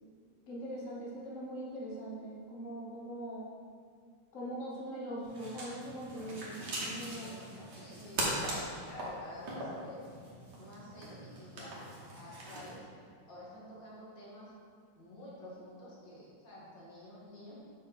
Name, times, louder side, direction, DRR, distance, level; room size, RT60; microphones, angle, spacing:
voice 1, 0.5-3.4 4.3-7.3, right 1 dB, 50° left, -4 dB, 1.4 m, -41 dB
sound 1, 5.2-12.8, right 1 dB, 65° right, 2.0 m, -40 dB
voice 2, 7.2-8.5 8.8-10.0 10.4-11.9 12.2-12.9 13.3-14.5 15.0-17.6, left 1 dB, 80° left, -6 dB, 2.4 m, -50 dB
6.6 x 6.2 x 4.1 m, 2.2 s
omnidirectional pair, 2.0 m